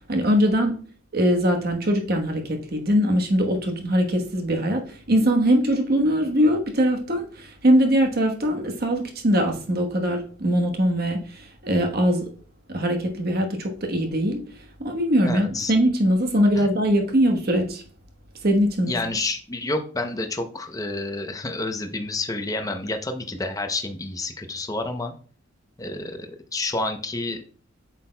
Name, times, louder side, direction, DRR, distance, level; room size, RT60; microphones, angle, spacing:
voice 1, 0.1-0.8 1.1-12.3 12.7-14.4 14.8-17.8 18.4-19.0, equal, 50° right, 1.2 m, -22 dB
voice 2, 15.2-15.7 16.5-16.7 18.9-25.1 25.8-27.4, left 2 dB, 20° left, 0.6 m, -29 dB
8.1 x 6.0 x 2.2 m
head